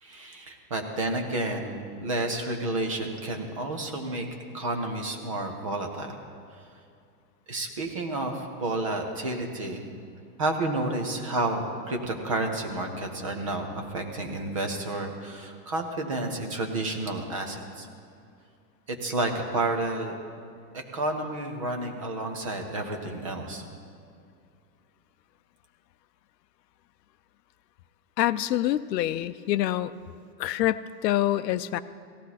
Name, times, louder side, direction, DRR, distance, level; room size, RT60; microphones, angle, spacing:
voice 1, 0.0-4.3 4.5-6.2 6.5-6.6 7.5-9.9 10.4-17.9 18.9-20.2 20.7-23.6, right 2 dB, 20° right, 4 dB, 0.5 m, -30 dB
voice 2, 28.2-29.9 30.4-31.8, left 13 dB, 75° left, 12 dB, 0.7 m, -26 dB
17.0 x 15.0 x 4.1 m, 2.4 s
supercardioid pair, 175°, 50 cm